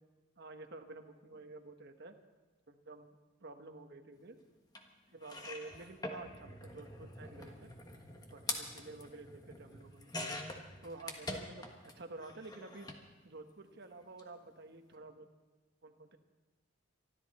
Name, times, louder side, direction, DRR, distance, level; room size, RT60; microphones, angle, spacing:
voice 1, 0.4-2.1 2.7-3.1 3.4-4.4 5.1-7.7 8.3-10.1 10.8-12.9 13.2-15.3 15.8-16.2, right 3 dB, 55° right, 6 dB, 1.2 m, -50 dB
sound 1, 4.7-4.8 5.2-11.9 12.2-13.0 14.0-14.2 14.5-14.6, left 2 dB, 20° left, 1.5 m, -45 dB
24.0 x 13.0 x 4.3 m, 1.2 s
head